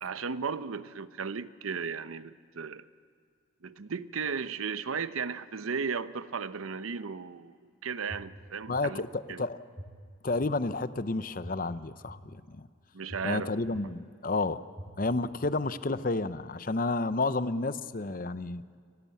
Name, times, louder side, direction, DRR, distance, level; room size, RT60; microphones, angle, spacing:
voice 1, 0.0-2.8 3.6-7.5 7.8-9.0 9.3-9.4 12.9-13.5, right 5 dB, 85° right, 0.7 m, -35 dB
sound 1, 8.1-8.2 8.7-8.8 9.8-9.9 10.4-10.5 11.4-11.5 12.1-12.2 13.1-13.2 13.7-13.8 14.7-14.8 15.4-15.5, equal, 25° right, 3.7 m, -42 dB
voice 2, 8.7-9.6 10.2-12.7 13.2-14.6 15.0-18.6, left 3 dB, 40° left, 0.7 m, -31 dB
25.5 x 18.0 x 8.5 m
head